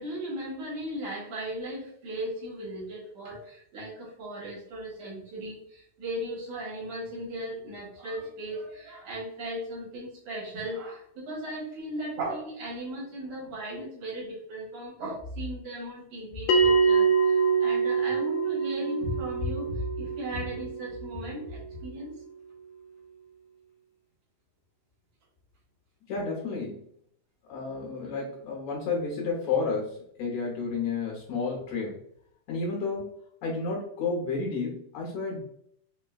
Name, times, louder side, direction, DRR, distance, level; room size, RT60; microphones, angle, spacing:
voice 1, 0.0-17.1 17.6-22.1 27.6-27.7, equal, 75° right, -4 dB, 2.9 m, -36 dB
Bell, 16.5-21.5, right 5 dB, 85° left, 2.0 m, -25 dB
voice 2, 26.1-26.8 27.5-32.0 32.5-33.1 33.4-35.4, left 4 dB, 70° left, -2 dB, 1.9 m, -31 dB
6.2 x 2.2 x 2.3 m, 0.66 s
omnidirectional pair, 3.5 m